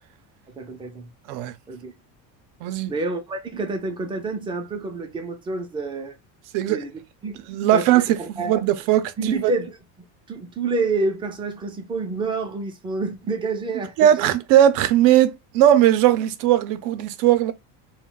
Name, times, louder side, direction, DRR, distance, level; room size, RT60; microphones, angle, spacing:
voice 1, 0.5-1.1 1.7-1.9 2.9-6.2 6.7-6.9 7.2-8.5 9.2-9.8 10.3-14.3, right 3 dB, 15° right, 0.4 m, -28 dB
voice 2, 2.6-2.9 6.5-6.8 7.5-9.5 14.0-17.5, right 11 dB, 70° right, 0.5 m, -18 dB
2.2 x 2.2 x 3.6 m
cardioid pair, 155°, 34 cm